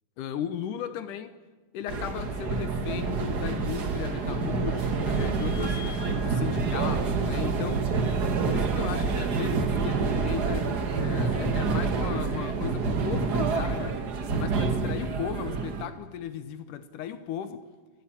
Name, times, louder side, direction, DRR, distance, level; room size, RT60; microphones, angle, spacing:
voice 1, 0.2-1.4 1.7-5.8 6.2-7.9 8.5-14.0 14.3-17.7, left 9 dB, 75° left, 2.2 m, -36 dB
sound 1, 1.9-15.8, right 4 dB, 65° right, 0.9 m, -27 dB
sound 2, 3.5-8.8, left 6 dB, 55° left, 4.7 m, -50 dB
29.0 x 12.0 x 8.8 m
omnidirectional pair, 4.2 m